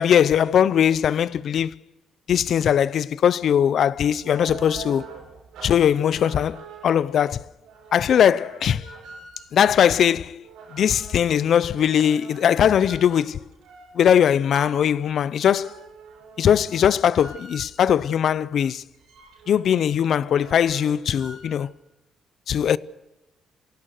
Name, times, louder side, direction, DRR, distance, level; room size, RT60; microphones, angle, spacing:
voice 1, 0.0-1.7 2.3-5.1 5.6-6.6 6.8-7.4 7.9-8.8 9.5-10.4 10.7-13.4 14.0-15.8 16.4-18.8 19.5-21.7 22.5-22.8, left 9 dB, 65° left, 0.6 m, -20 dB
sound 1, 3.9-18.0 18.5-18.6 18.8-21.7, right 5 dB, 85° right, 7.3 m, -44 dB
27.5 x 17.5 x 6.6 m
cardioid pair, 90°, 0 cm